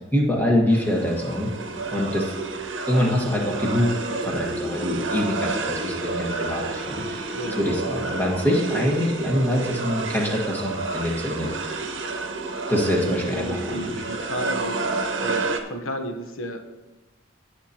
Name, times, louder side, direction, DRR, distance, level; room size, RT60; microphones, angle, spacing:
voice 1, 0.1-1.5 1.9-2.3 2.9-3.9 4.2-11.5 12.7-14.0, left 1 dB, 10° left, -2 dB, 1.5 m, -24 dB
sound 1, 0.7-15.6, right 3 dB, 70° right, 0.9 m, -30 dB
voice 2, 13.0-14.9 15.1-16.6, equal, 90° left, 4 dB, 1.0 m, -33 dB
16.5 x 6.6 x 2.9 m, 1.1 s
head